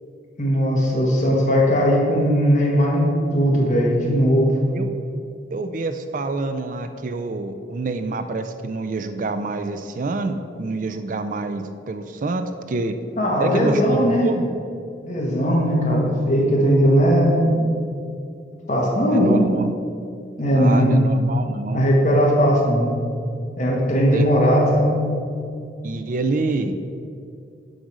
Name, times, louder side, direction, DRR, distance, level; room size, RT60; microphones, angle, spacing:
voice 1, 0.4-4.5 13.2-14.3 15.0-17.6 18.7-19.5 20.4-21.0 21.7-22.9 23.6-24.9, equal, 40° left, -2 dB, 1.6 m, -18 dB
voice 2, 5.5-12.9 13.4-14.6 19.1-19.7 20.5-21.8 24.1-24.3 25.8-26.8, right 3 dB, 45° right, 8 dB, 0.4 m, -27 dB
7.9 x 5.0 x 6.2 m, 2.4 s
head